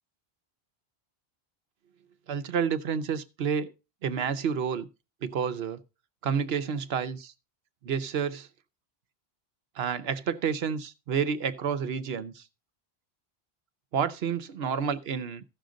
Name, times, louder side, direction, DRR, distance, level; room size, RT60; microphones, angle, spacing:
voice 1, 2.3-3.7 4.0-4.9 5.2-5.8 6.2-7.3 7.8-8.5 9.7-12.5 13.9-15.4, right 7 dB, 70° right, 1.0 m, -29 dB
14.5 x 6.4 x 3.8 m
omnidirectional pair, 1.1 m